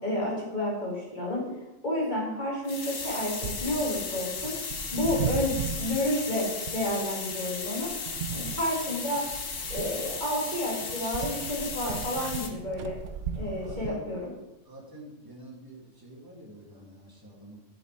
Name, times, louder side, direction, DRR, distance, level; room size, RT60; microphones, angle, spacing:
voice 1, 0.0-1.5 1.8-4.5 4.9-7.9 8.3-9.2 9.7-13.0 13.3-14.3, left 1 dB, 35° left, -5 dB, 2.2 m, -30 dB
sound 1, 2.6-12.5, left 5 dB, 75° left, 1.5 m, -36 dB
sound 2, 3.0-13.9, right 7 dB, 65° right, 0.9 m, -37 dB
voice 2, 13.6-14.0 14.7-17.6, right 1 dB, 15° right, -2 dB, 1.9 m, -47 dB
11.0 x 5.2 x 4.5 m, 0.96 s
omnidirectional pair, 1.4 m